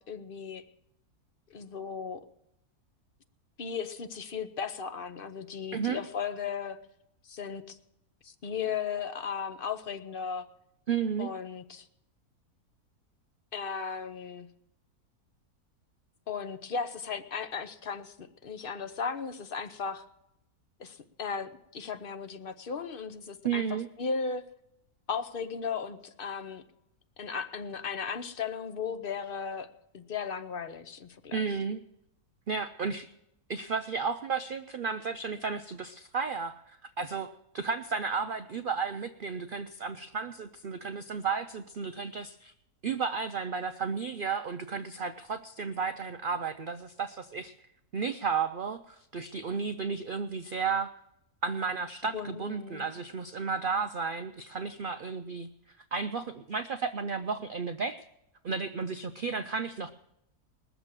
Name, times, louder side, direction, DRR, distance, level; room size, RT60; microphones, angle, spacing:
voice 1, 0.1-0.6 1.5-2.2 3.6-6.8 7.2-7.8 8.2-10.5 11.2-11.9 13.5-14.5 16.3-20.0 20.8-24.4 25.1-26.6 27.2-29.7 29.9-31.4 52.1-52.9, left 6 dB, 45° left, 10 dB, 0.8 m, -36 dB
voice 2, 5.7-6.0 10.9-11.3 23.4-23.9 31.3-31.8 32.5-33.1 33.5-42.5 42.8-47.5 47.9-50.9 51.4-58.0 58.4-59.9, right 5 dB, 90° right, 9 dB, 0.4 m, -33 dB
20.5 x 7.1 x 7.4 m, 0.81 s
omnidirectional pair, 1.7 m